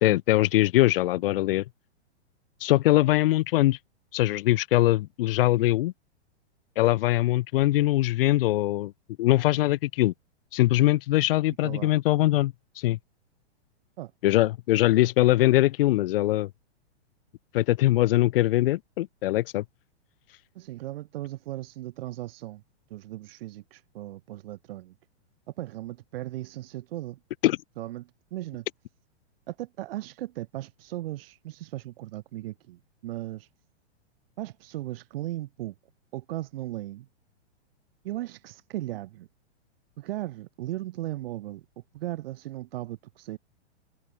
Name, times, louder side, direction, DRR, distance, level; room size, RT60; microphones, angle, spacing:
voice 1, 0.0-1.6 2.6-3.8 4.1-5.9 6.8-8.9 9.2-10.1 10.5-13.0 14.2-16.5 17.5-19.6 27.4-27.6, left 16 dB, 55° left, 2.7 m, -22 dB
voice 2, 20.5-22.6 22.9-24.9 25.5-27.2 27.8-28.6 29.5-33.5 34.4-35.7 36.1-37.1 38.0-39.3 40.0-41.6 41.9-43.4, right 15 dB, 55° right, 5.0 m, -37 dB
hypercardioid pair, 135°, 34 cm